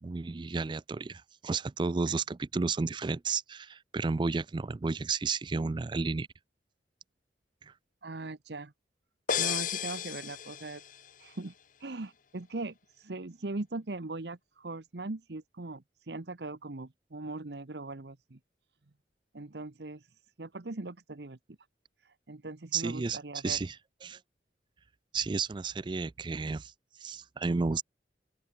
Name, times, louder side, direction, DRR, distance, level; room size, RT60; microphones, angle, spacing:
voice 1, 0.0-6.3 7.6-7.7 22.7-23.2 23.4-23.8 24.0-24.2 25.1-26.7 27.0-27.8, right 4 dB, 25° right, 0.4 m, -32 dB
voice 2, 8.0-8.7 9.4-10.8 11.2-11.5 11.8-18.4 19.3-21.4 22.0-23.6, right 2 dB, 65° right, 1.1 m, -40 dB
sound 1, 9.3-11.1, left 8 dB, 45° left, 1.1 m, -33 dB
open air
head